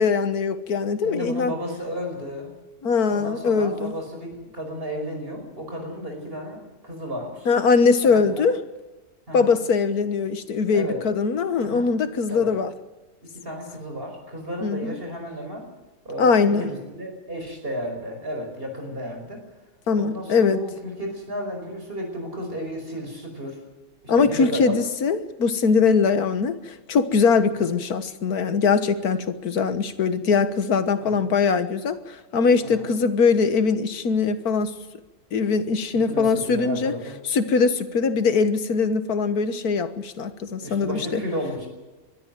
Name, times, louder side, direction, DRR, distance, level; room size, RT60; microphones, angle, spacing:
voice 1, 0.0-1.5 2.8-3.9 7.5-8.6 9.3-12.7 14.6-14.9 16.2-16.7 19.9-20.6 24.1-34.7 35.3-36.9 37.3-41.2, left 5 dB, 90° left, 11 dB, 1.8 m, -21 dB
voice 2, 1.0-2.5 3.1-7.5 8.0-8.5 9.3-9.6 10.7-11.0 11.6-11.9 12.3-12.6 13.2-15.7 16.0-19.4 20.0-23.6 24.0-24.7 27.6-27.7 31.0-31.2 32.6-32.9 35.9-37.2 40.6-41.7, equal, 40° right, 3 dB, 5.5 m, -33 dB
22.0 x 13.0 x 9.2 m, 1.2 s
omnidirectional pair, 1.5 m